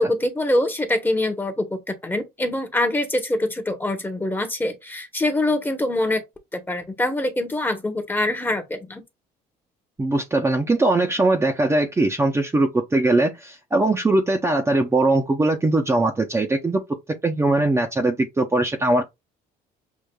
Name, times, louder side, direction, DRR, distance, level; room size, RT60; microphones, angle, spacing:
voice 1, 0.0-6.2 6.5-9.0, left 1 dB, 10° left, 1.0 m, -24 dB
voice 2, 10.0-16.8 17.2-19.0, right 2 dB, 15° right, 0.7 m, -20 dB
6.3 x 2.5 x 2.3 m
cardioid pair, 110°, 17 cm